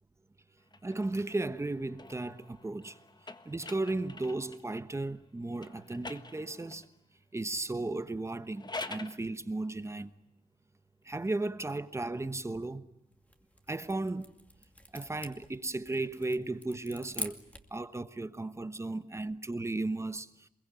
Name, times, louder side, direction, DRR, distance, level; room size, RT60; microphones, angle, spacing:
sound 1, 0.7-4.7 5.6-6.9 8.4-9.2, left 3 dB, 30° left, 1.4 m, -46 dB
voice 1, 0.8-3.0 3.4-6.9 7.3-10.1 11.0-12.9 13.7-14.3 14.9-17.4 17.7-20.5, right 2 dB, 20° right, 1.2 m, -35 dB
sound 2, 13.1-17.8, left 1 dB, 10° left, 2.4 m, -45 dB
28.0 x 22.0 x 9.2 m
wide cardioid pair, 140°, 15 cm